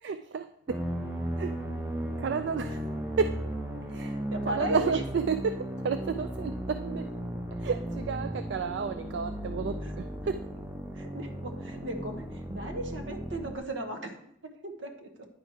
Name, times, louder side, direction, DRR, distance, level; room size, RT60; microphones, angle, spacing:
voice 1, 0.0-0.8 1.4-1.6 2.2-2.8 3.2-3.4 3.9-4.1 4.5-7.1 7.6-10.5, right 5 dB, 70° right, 10 dB, 0.3 m, -31 dB
sound 1, 0.7-13.6, right 1 dB, 15° right, 0.8 m, -36 dB
voice 2, 4.1-5.0 9.8-9.9 10.9-14.2 14.4-15.3, right 1 dB, 85° right, 4 dB, 1.1 m, -37 dB
9.9 x 4.6 x 4.6 m, 0.71 s
head